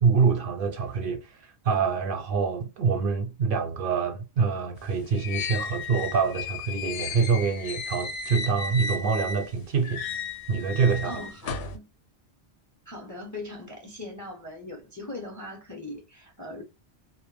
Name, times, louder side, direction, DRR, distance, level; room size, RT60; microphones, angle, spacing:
voice 1, 0.0-10.0 10.5-11.2, right 5 dB, 60° right, 0.7 m, -26 dB
sound 1, 4.8-9.5 9.8-11.8, left 4 dB, 65° left, 0.7 m, -34 dB
voice 2, 11.0-11.9 12.9-16.6, left 2 dB, 25° left, 0.4 m, -40 dB
2.1 x 2.1 x 3.1 m
omnidirectional pair, 1.1 m